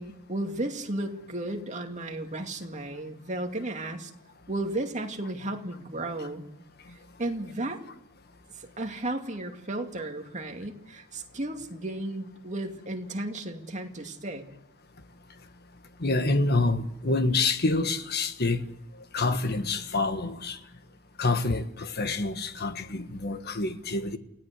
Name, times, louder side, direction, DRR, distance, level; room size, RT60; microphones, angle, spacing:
voice 1, 0.0-4.1 4.5-6.4 6.9-7.8 8.6-14.4, right 1 dB, 35° right, 2.4 m, -34 dB
voice 2, 16.0-18.6 19.1-20.6 21.2-24.2, left 3 dB, 50° left, 1.6 m, -27 dB
28.5 x 17.5 x 8.3 m
head